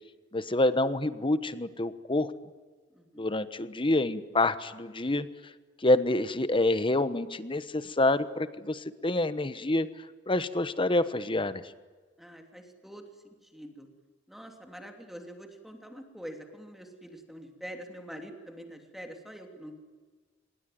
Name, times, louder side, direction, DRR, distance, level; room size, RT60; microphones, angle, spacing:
voice 1, 0.3-2.3 3.2-5.3 5.8-11.7, left 2 dB, 25° left, 14 dB, 1.2 m, -27 dB
voice 2, 2.9-3.3 12.2-13.9 14.3-19.8, equal, ahead, 4 dB, 3.0 m, -45 dB
26.0 x 21.5 x 9.4 m, 1.4 s
head